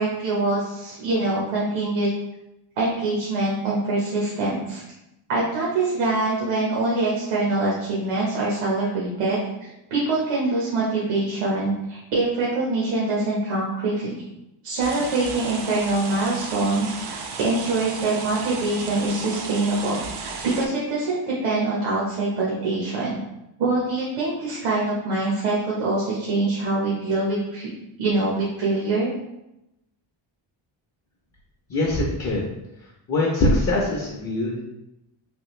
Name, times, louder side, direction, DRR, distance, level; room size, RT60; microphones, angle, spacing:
voice 1, 0.0-2.1 2.8-4.8 5.3-14.2 14.6-23.2 23.6-27.7 28.0-29.1, right 2 dB, 90° right, -5 dB, 1.1 m, -24 dB
sound 1, 14.8-20.7, right 5 dB, 55° right, 0.5 m, -34 dB
voice 2, 31.7-32.5 33.1-34.6, left 1 dB, 35° left, -3 dB, 0.6 m, -22 dB
3.5 x 2.5 x 3.1 m, 0.89 s
cardioid pair, 150°, 50 cm